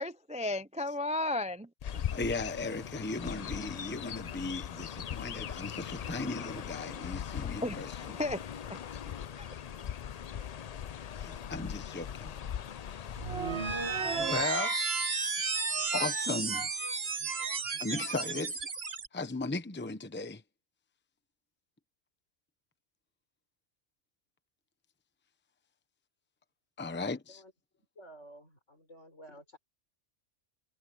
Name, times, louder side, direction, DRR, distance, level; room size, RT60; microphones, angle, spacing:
voice 1, 0.0-2.0 7.6-8.4 8.7-8.8 9.4-9.5, left 2 dB, 10° right, 0.3 m, -34 dB
Chirp tweet, 1.8-14.5, left 9 dB, 55° left, 0.4 m, -40 dB
voice 2, 2.1-7.9 11.1-12.4 12.9-13.3 13.7-13.8 14.2-14.7 15.9-16.7 17.8-18.7 19.1-20.4 26.8-27.4, left 3 dB, 10° left, 0.9 m, -37 dB
sound 1, 13.2-19.1, right 4 dB, 55° right, 1.7 m, -33 dB
voice 3, 27.9-29.6, right 1 dB, 75° left, 6.8 m, -52 dB
omnidirectional pair, 1.3 m